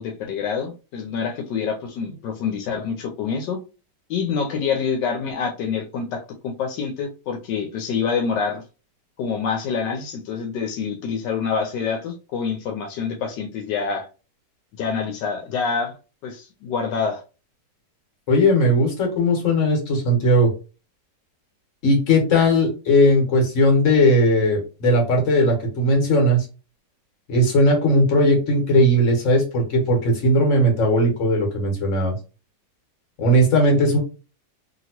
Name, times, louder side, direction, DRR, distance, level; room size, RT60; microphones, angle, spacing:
voice 1, 0.0-3.6 4.1-8.6 9.2-14.1 14.7-15.9 16.2-17.2, left 6 dB, 80° left, 1.2 m, -26 dB
voice 2, 18.3-20.5 21.8-26.4 27.3-32.1 33.2-34.0, equal, 50° left, 1.4 m, -18 dB
2.8 x 2.8 x 2.8 m
omnidirectional pair, 1.9 m